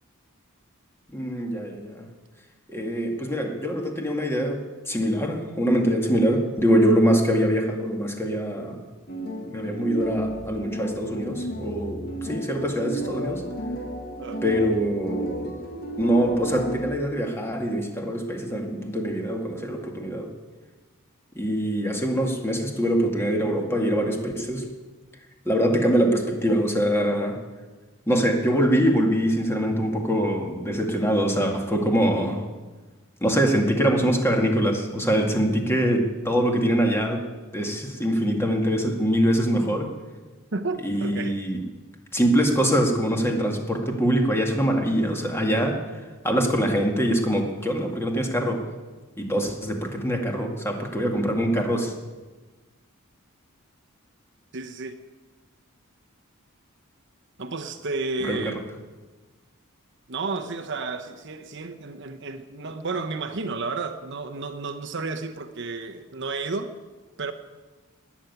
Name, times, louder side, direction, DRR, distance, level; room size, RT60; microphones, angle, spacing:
voice 1, 1.1-2.0 2.7-4.6 4.9-8.8 9.5-13.4 14.4-15.5 16.0-20.3 21.3-24.6 25.5-27.4 28.1-32.4 33.2-37.2 37.5-39.9 40.8-41.6 42.1-48.6 49.2-51.9 58.3-58.4, equal, 10° left, 2.1 m, -23 dB
sound 1, 9.1-16.8, right 1 dB, 45° left, 2.0 m, -33 dB
voice 2, 40.5-41.5 54.5-55.0 57.4-58.6 60.1-66.7 67.2-67.3, right 3 dB, 55° right, 1.0 m, -32 dB
20.0 x 7.4 x 9.5 m
head